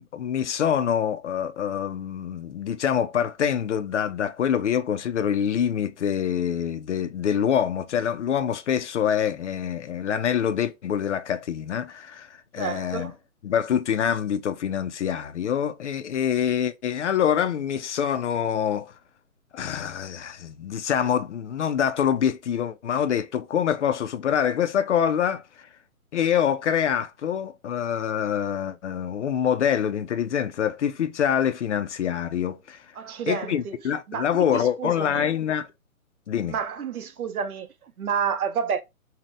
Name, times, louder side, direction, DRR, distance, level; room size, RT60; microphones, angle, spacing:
voice 1, 0.0-12.3 12.5-13.1 13.4-18.9 19.5-25.4 26.1-32.8 33.3-35.7 36.3-36.5, left 8 dB, 55° left, 0.5 m, -25 dB
voice 2, 12.6-13.2 33.0-33.8 34.1-35.3 36.5-38.8, right 7 dB, 80° right, 0.7 m, -30 dB
2.8 x 2.0 x 3.2 m
hypercardioid pair, 155°, 43 cm